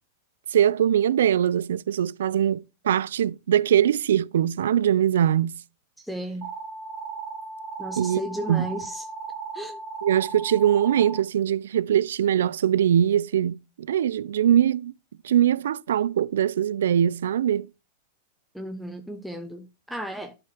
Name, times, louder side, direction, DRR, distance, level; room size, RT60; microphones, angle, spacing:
voice 1, 0.5-5.5 8.0-8.2 8.5-8.7 10.0-14.9 15.2-17.7, right 10 dB, 90° right, 0.4 m, -22 dB
voice 2, 6.0-6.5 7.8-9.1 9.5-9.8 18.5-20.3, equal, ahead, 0.8 m, -34 dB
sound 1, 6.4-11.2, right 5 dB, 45° right, 1.7 m, -36 dB
11.0 x 4.8 x 3.3 m
supercardioid pair, 140°, 0 cm